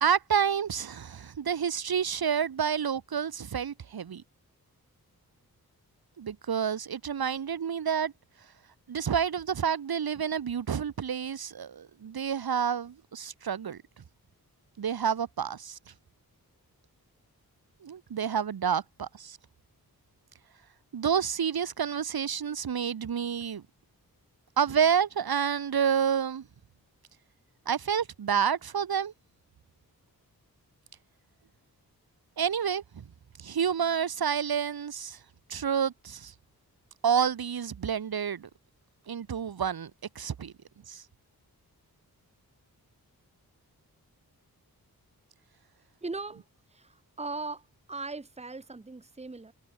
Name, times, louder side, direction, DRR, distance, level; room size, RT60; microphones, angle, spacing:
voice 1, 0.0-4.2 6.2-8.1 8.9-13.8 14.8-15.8 17.8-19.4 20.9-23.6 24.6-26.5 27.7-29.1 32.4-33.1 33.4-35.2 35.5-36.3 37.0-38.5 39.1-39.9 40.2-40.5 40.9-41.0, right 7 dB, 75° right, 1.7 m, -29 dB
voice 2, 46.0-46.4 46.7-49.5, right 3 dB, 15° right, 1.3 m, -39 dB
wide cardioid pair, 145°, 37 cm